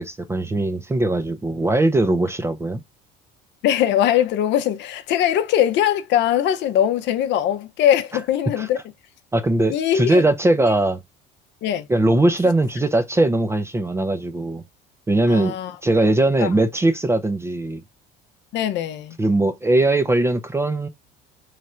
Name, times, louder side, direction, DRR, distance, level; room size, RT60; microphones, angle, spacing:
voice 1, 0.0-2.8 8.6-8.7 9.3-11.0 11.9-14.6 15.1-17.8 19.2-20.9, right 2 dB, 10° right, 0.4 m, -20 dB
voice 2, 3.6-8.8 9.7-10.2 11.6-11.9 15.3-15.7 16.4-16.5 18.5-19.2, left 10 dB, 60° left, 0.6 m, -21 dB
3.2 x 2.5 x 4.2 m
cardioid pair, 120°, 21 cm